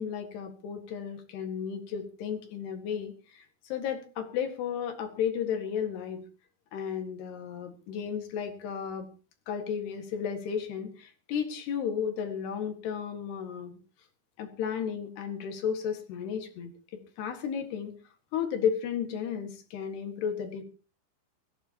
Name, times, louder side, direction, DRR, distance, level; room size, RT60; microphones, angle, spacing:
voice 1, 0.0-6.2 6.7-9.1 9.5-13.8 14.4-17.9 18.3-20.6, left 7 dB, 65° left, 6 dB, 3.6 m, -33 dB
21.5 x 15.5 x 2.9 m, 0.34 s
omnidirectional pair, 5.7 m